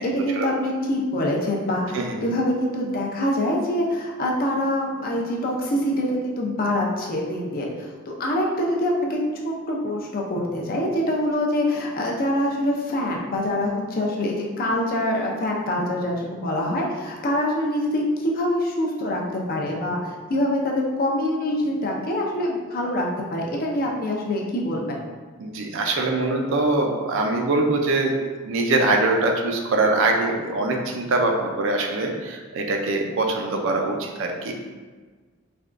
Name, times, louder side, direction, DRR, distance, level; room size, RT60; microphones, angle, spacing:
voice 1, 0.0-9.2 9.4-25.0, left 1 dB, 45° left, -1 dB, 0.5 m, -25 dB
voice 2, 25.4-28.1 28.4-34.5, right 2 dB, 65° right, 2 dB, 0.4 m, -23 dB
3.3 x 2.2 x 2.4 m, 1.4 s
head